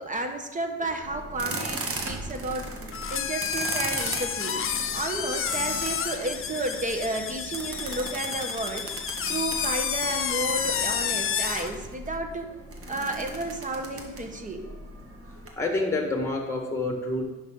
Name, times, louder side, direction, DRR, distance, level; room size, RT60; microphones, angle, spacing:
voice 1, 0.0-2.7 3.1-4.6 4.9-8.9 9.3-12.5 12.9-14.6, right 2 dB, 25° right, 4 dB, 1.3 m, -32 dB
sound 1, 1.0-15.5, right 2 dB, 50° right, 1.6 m, -38 dB
sound 2, 2.9-11.7, left 7 dB, 45° left, 0.7 m, -30 dB
voice 2, 15.6-17.2, left 2 dB, 10° left, 2 dB, 1.6 m, -27 dB
10.5 x 5.8 x 3.8 m, 1.1 s
cardioid pair, 90°, 30 cm